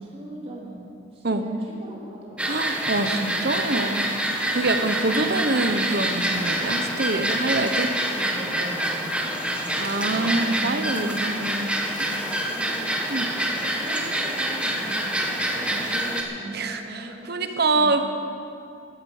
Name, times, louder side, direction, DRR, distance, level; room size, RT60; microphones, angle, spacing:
voice 1, 0.0-2.4 5.1-5.4 7.4-7.5 8.0-11.3 12.1-12.9 13.5-18.0, right 1 dB, 30° right, -4 dB, 3.5 m, -39 dB
sound 1, 2.4-16.2, right 1 dB, 5° right, 1.3 m, -26 dB
voice 2, 2.4-4.1 4.5-7.9 9.8-11.7 12.0-12.1 13.1-13.3 16.5-18.0, right 2 dB, 50° right, 7 dB, 1.1 m, -25 dB
14.5 x 13.5 x 6.6 m, 2.5 s
head